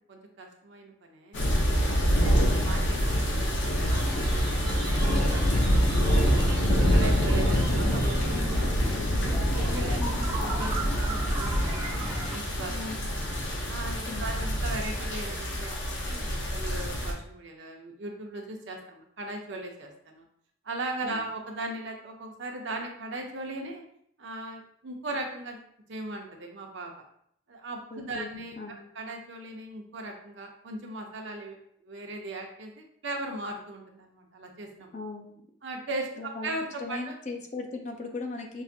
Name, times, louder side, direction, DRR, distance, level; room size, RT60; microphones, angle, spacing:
voice 1, 0.1-1.5 2.2-4.7 4.9-6.2 6.6-9.0 9.5-10.0 10.4-11.9 12.3-13.2 13.7-20.2 20.6-23.8 24.2-25.6 25.9-26.9 27.5-28.5 28.9-31.6 31.8-34.9 35.6-37.2, right 2 dB, 70° right, 2 dB, 0.7 m, -38 dB
sound 1, 1.3-17.1, equal, 75° left, 0.9 m, -26 dB
voice 2, 1.8-3.1 9.0-9.5 10.0-10.3 12.7-13.4 14.1-14.3 21.0-21.3 27.9-28.3 28.6-28.9 34.9-35.5 36.2-36.5 36.8-38.6, left 3 dB, 35° left, 3 dB, 0.5 m, -39 dB
sound 2, 3.8-12.4, right 1 dB, 15° right, 1.3 m, -37 dB
5.6 x 2.5 x 2.7 m, 0.68 s
head